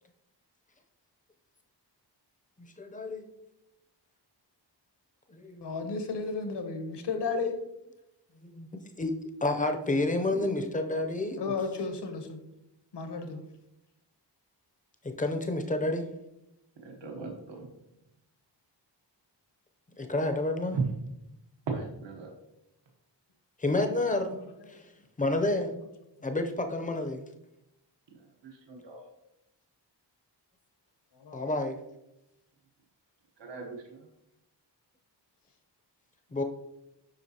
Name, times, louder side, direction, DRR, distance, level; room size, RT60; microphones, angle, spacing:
voice 1, 2.6-3.3 5.3-5.8 7.3-7.5 8.5-8.7 9.0-9.1 9.4-11.5 15.2-16.0 20.0-20.8 23.6-24.4 24.7-24.8 25.2-25.8 26.2-27.2 31.3-31.8 36.3-36.4, left 2 dB, 20° left, 6 dB, 0.5 m, -29 dB
voice 2, 5.6-7.6 11.4-12.4 12.9-13.4 24.6-24.8 26.2-26.3 31.1-31.5, left 4 dB, 70° left, 6 dB, 1.0 m, -34 dB
voice 3, 16.8-17.7 20.7-20.8 21.7-22.3 28.4-29.0 33.4-34.0, right 4 dB, 80° right, 2 dB, 1.1 m, -37 dB
7.8 x 5.6 x 2.8 m, 0.86 s
wide cardioid pair, 175°, 43 cm